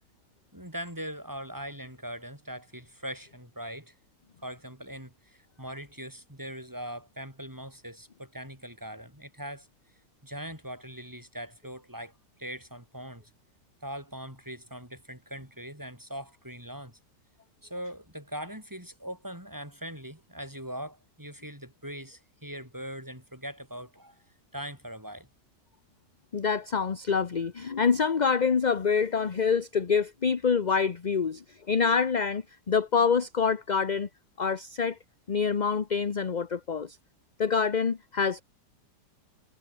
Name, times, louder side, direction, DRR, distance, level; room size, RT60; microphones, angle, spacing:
voice 1, 0.5-3.9 4.4-9.7 10.2-13.2 13.8-17.0 17.6-24.2 24.5-25.3, equal, 10° right, 6.4 m, -41 dB
voice 2, 26.3-34.1 34.4-35.0 35.3-37.0 37.4-38.4, left 5 dB, 35° left, 0.8 m, -26 dB
omnidirectional pair, 1.8 m